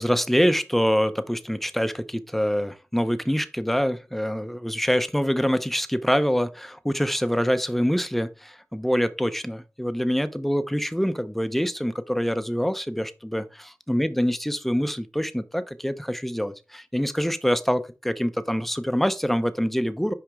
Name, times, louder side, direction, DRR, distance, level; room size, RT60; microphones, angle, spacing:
voice 1, 0.0-20.1, equal, 5° left, 0.6 m, -25 dB
5.9 x 5.0 x 3.5 m
wide cardioid pair, 55°, 6 cm